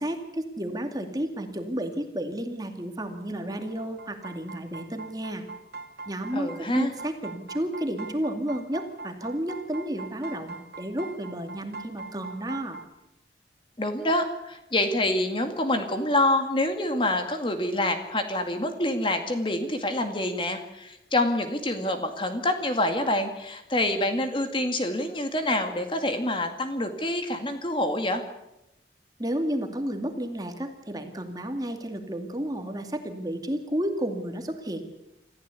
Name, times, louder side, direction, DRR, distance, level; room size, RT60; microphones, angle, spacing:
voice 1, 0.0-5.4 6.1-12.8 29.2-34.8, right 1 dB, 20° right, 5 dB, 2.3 m, -32 dB
sound 1, 3.8-12.9, right 4 dB, 65° right, 2.7 m, -42 dB
voice 2, 6.3-6.9 13.8-28.2, left 1 dB, 30° left, 6 dB, 2.1 m, -26 dB
26.5 x 15.0 x 8.4 m, 0.90 s
head